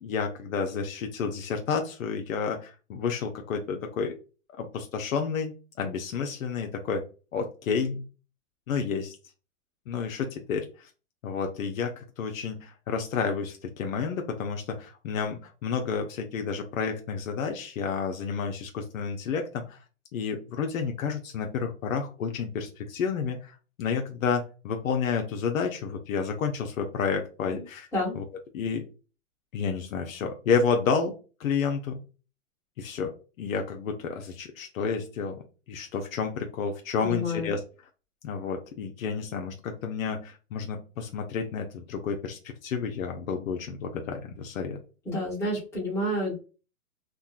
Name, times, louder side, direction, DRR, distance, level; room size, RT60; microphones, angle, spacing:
voice 1, 0.0-4.2 4.6-7.0 7.3-8.0 8.7-9.2 9.9-10.9 11.2-19.8 20.1-27.9 28.1-28.2 28.5-28.9 29.5-32.0 32.8-37.6 38.2-44.8, left 6 dB, 75° left, 4 dB, 0.7 m, -30 dB
voice 2, 37.0-37.5 45.1-46.3, left 1 dB, 5° left, -7 dB, 1.1 m, -29 dB
3.7 x 2.2 x 2.3 m, 0.34 s
hypercardioid pair, 140°, 41 cm